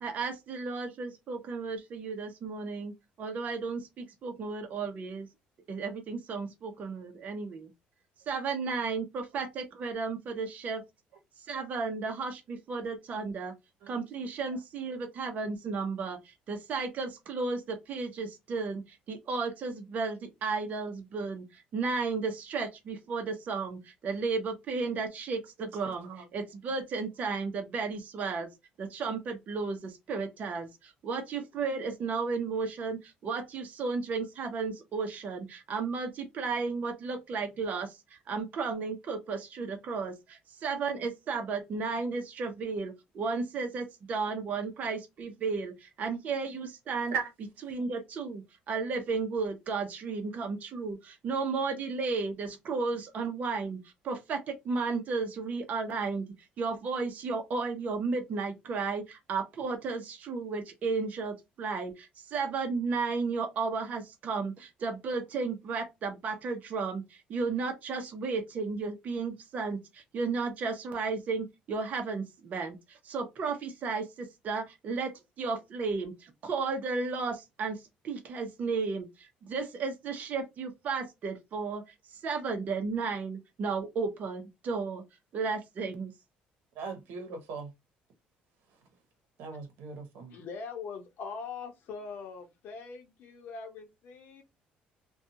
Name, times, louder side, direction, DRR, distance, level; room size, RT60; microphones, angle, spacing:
voice 1, 0.0-5.3 5.7-7.7 8.3-10.8 11.5-13.5 13.9-28.5 28.8-47.1 47.7-56.3 56.6-77.8 78.0-81.8 82.1-85.0 85.3-86.1, right 4 dB, 50° right, 0.8 m, -34 dB
voice 2, 25.6-26.3 47.1-47.3 86.7-87.7 89.4-90.3, right 5 dB, 75° right, 1.0 m, -38 dB
voice 3, 90.3-94.4, left 5 dB, 65° left, 0.8 m, -42 dB
2.6 x 2.3 x 2.6 m
cardioid pair, 100°, 3 cm